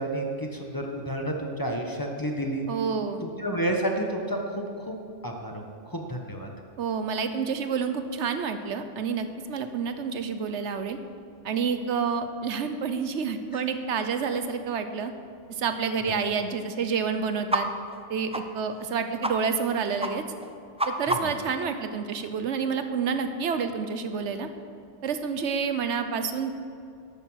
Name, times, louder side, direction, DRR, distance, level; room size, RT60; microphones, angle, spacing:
voice 1, 0.0-2.6 3.2-5.0 5.2-5.6 5.9-6.5 13.5-13.6 21.1-21.3, right 1 dB, 20° left, 1 dB, 1.2 m, -30 dB
voice 2, 2.7-3.3 6.8-11.0 11.4-15.1 15.5-17.7 18.1-20.2 20.9-24.5 25.0-26.5, right 6 dB, 75° right, 9 dB, 1.1 m, -29 dB
sound 1, 17.5-17.6 17.9-18.0 18.3-18.4 18.8-18.9 19.2-19.3 19.6-19.7 20.0-20.1 20.4-21.5, right 1 dB, 10° right, 0.4 m, -28 dB
12.0 x 9.0 x 6.3 m, 2.4 s
omnidirectional pair, 1.2 m